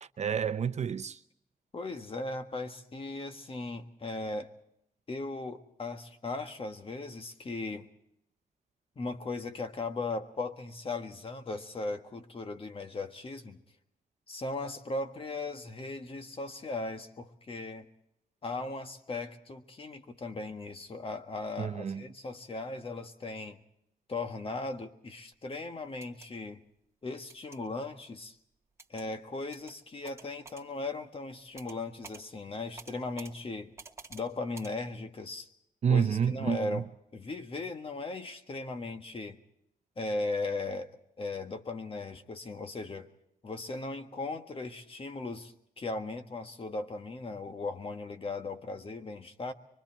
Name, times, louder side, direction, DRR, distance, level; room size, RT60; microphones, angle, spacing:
voice 1, 0.2-1.2 21.6-22.0 35.8-36.8, right 7 dB, 45° right, 0.7 m, -29 dB
voice 2, 1.7-4.5 5.1-7.9 8.9-13.6 14.3-17.9 18.4-23.6 24.1-26.6 27.0-28.4 28.9-33.7 34.1-35.5 35.9-36.9 37.1-39.4 40.0-40.9 41.2-43.1 43.4-49.5, left 3 dB, 35° left, 1.6 m, -37 dB
sound 1, 25.9-26.3 27.3-27.6 28.8-29.1 29.5-29.7 30.0-30.6 31.6-31.8 32.0-32.2 32.8-33.3 33.8-34.2 34.5-34.7, right 4 dB, 15° right, 2.2 m, -49 dB
24.5 x 23.5 x 4.5 m
cardioid pair, 120°, 16 cm